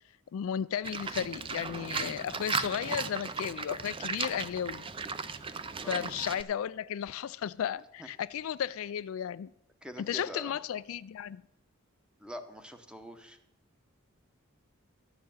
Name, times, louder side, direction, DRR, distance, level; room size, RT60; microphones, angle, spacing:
voice 1, 0.3-4.8 5.8-9.5 10.0-11.4, left 9 dB, 65° left, 0.3 m, -34 dB
Livestock farm animals working animals, 0.8-6.4, right 5 dB, 25° right, 0.5 m, -36 dB
voice 2, 5.7-6.1 8.0-8.1 9.8-10.6 12.2-13.4, equal, 5° right, 0.9 m, -44 dB
12.5 x 5.6 x 8.6 m
head